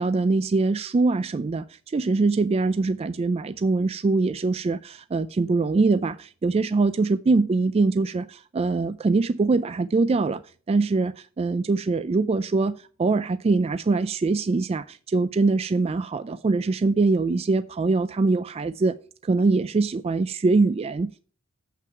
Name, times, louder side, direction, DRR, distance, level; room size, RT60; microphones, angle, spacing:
voice 1, 0.0-10.4 10.7-18.9 19.2-21.2, right 3 dB, 25° right, 0.3 m, -23 dB
7.8 x 5.9 x 4.4 m
head